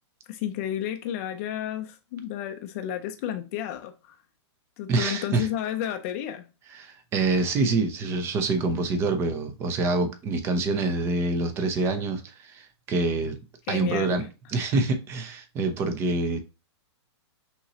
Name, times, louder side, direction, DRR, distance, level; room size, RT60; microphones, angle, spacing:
voice 1, 0.3-4.1 4.8-6.5 13.7-14.3, left 11 dB, 30° left, 0.5 m, -32 dB
voice 2, 4.9-5.5 6.7-13.4 13.7-16.4, right 3 dB, 15° right, 0.6 m, -26 dB
5.6 x 3.0 x 2.8 m
hypercardioid pair, 160°, 15 cm